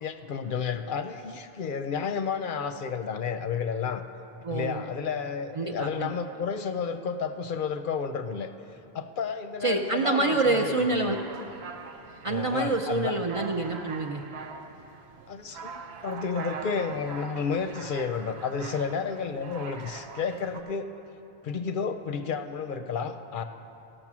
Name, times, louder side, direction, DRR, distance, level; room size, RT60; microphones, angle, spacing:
voice 1, 0.0-4.0 4.5-8.5 8.9-11.2 12.3-13.2 15.3-21.1 21.4-23.4, left 6 dB, 60° left, 9 dB, 0.7 m, -31 dB
voice 2, 4.4-4.9 5.6-6.1 9.6-11.2 12.2-14.2, right 3 dB, 45° right, 3 dB, 0.5 m, -27 dB
sound 1, 11.1-20.6, right 5 dB, 90° right, 1.0 m, -42 dB
15.5 x 6.5 x 6.1 m, 2.9 s
omnidirectional pair, 1.0 m